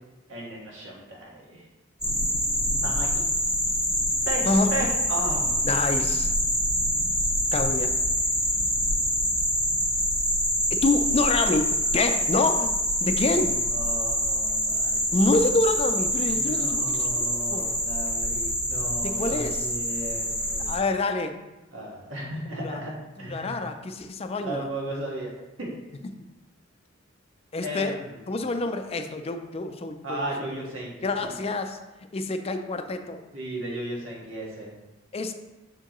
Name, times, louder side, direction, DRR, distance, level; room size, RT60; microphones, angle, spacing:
voice 1, 0.3-1.6 2.8-3.2 4.2-5.6 13.3-13.4 13.7-15.2 16.3-20.7 21.7-23.6 24.4-25.3 25.6-25.7 27.6-28.3 30.0-31.4 33.3-34.7, right 1 dB, 85° right, -3 dB, 1.6 m, -35 dB
sound 1, 2.0-20.8, equal, 5° right, 1.3 m, -26 dB
voice 2, 5.6-6.3 7.5-7.9 10.7-12.7 13.0-13.5 15.1-17.7 19.0-19.7 20.7-21.3 22.5-22.8 23.2-24.7 27.5-27.9 28.3-30.2 31.0-31.8 32.1-33.2 35.1-35.3, left 2 dB, 30° left, 7 dB, 0.4 m, -27 dB
6.9 x 4.5 x 3.0 m, 1.0 s
head